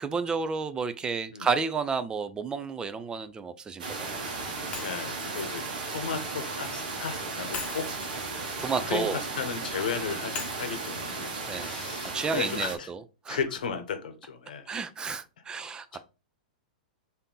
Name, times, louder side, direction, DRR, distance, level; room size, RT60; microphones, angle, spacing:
voice 1, 0.0-4.2 8.6-9.2 11.5-11.7 12.1-13.4 14.7-16.0, right 5 dB, 15° right, 0.4 m, -31 dB
sound 1, 3.8-12.8, right 3 dB, 70° right, 1.0 m, -35 dB
voice 2, 4.7-8.0 8.8-12.9 13.3-14.7 15.9-16.0, left 6 dB, 75° left, 0.8 m, -35 dB
Shatter, 4.7-6.8 7.5-9.6 10.3-12.4, left 5 dB, 25° left, 1.0 m, -43 dB
3.5 x 2.7 x 3.8 m
hypercardioid pair, 110°, 5 cm